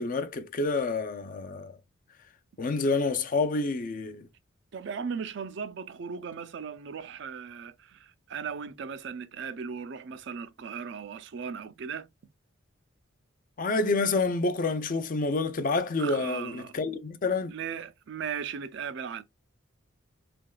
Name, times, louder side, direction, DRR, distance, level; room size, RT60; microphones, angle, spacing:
voice 1, 0.0-1.7 2.6-4.3 13.6-17.5, left 3 dB, 40° left, 0.5 m, -28 dB
voice 2, 4.7-12.1 16.0-16.7 17.5-19.2, right 6 dB, 60° right, 0.4 m, -37 dB
3.7 x 3.4 x 2.2 m
head